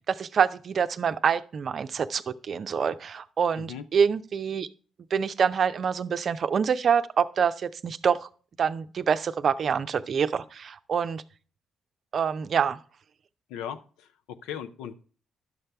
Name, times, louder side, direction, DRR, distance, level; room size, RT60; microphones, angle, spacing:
voice 1, 0.1-4.7 5.1-8.3 8.6-11.2 12.1-12.8, right 7 dB, 55° right, 12 dB, 0.5 m, -26 dB
voice 2, 13.5-14.9, left 9 dB, 75° left, 10 dB, 0.7 m, -38 dB
11.0 x 6.6 x 3.4 m, 0.40 s
hypercardioid pair, 45°, 0 cm